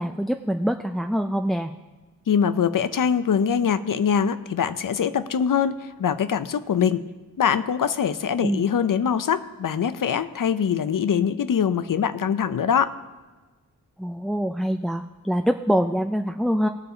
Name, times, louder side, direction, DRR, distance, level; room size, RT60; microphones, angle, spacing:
voice 1, 0.0-1.7 8.4-8.6 14.0-16.7, equal, ahead, 6 dB, 0.3 m, -24 dB
voice 2, 2.3-7.0 7.4-12.9, left 7 dB, 70° left, 13 dB, 0.6 m, -23 dB
19.0 x 6.8 x 3.9 m, 1.3 s
wide cardioid pair, 95°, 34 cm